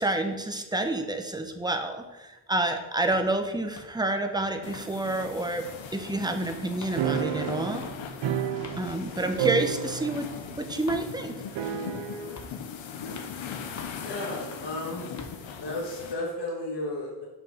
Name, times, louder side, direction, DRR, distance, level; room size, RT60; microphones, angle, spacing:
voice 1, 0.0-5.7 5.9-7.9 8.8-10.3 10.6-11.4, right 2 dB, 10° right, 6 dB, 0.9 m, -29 dB
sound 1, 3.1-3.3 3.7-4.0 4.4-4.9 5.2-5.4 5.7-6.3 6.7-7.0 7.7-8.0 8.6-8.8 9.4-9.6 10.2-10.3 10.9-11.1 11.6-11.9 12.4-12.6 13.1-13.3 13.8-14.0 14.5-14.7 15.2-15.4, left 3 dB, 40° left, 1.0 m, -45 dB
sound 2, 4.6-16.1, left 7 dB, 90° left, 0.9 m, -40 dB
sound 3, 7.0-9.1 9.4-10.4 10.6-10.7 11.6-12.4, right 10 dB, 70° right, 0.7 m, -30 dB
voice 2, 14.0-15.1 15.6-17.3, left 2 dB, 65° left, -3 dB, 1.9 m, -33 dB
6.0 x 4.6 x 5.2 m, 1.1 s
cardioid pair, 70°, 45 cm